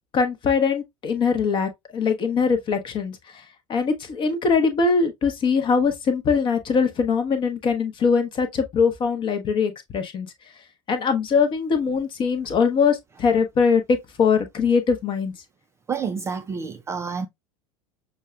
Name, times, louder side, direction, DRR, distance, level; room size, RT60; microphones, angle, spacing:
voice 1, 0.1-3.2 3.7-10.3 10.9-13.8 14.2-15.3, left 5 dB, 30° left, 0.8 m, -22 dB
voice 2, 15.9-17.3, right 5 dB, 15° right, 0.3 m, -29 dB
6.3 x 2.2 x 2.3 m
figure-of-eight pair, 80°, 16 cm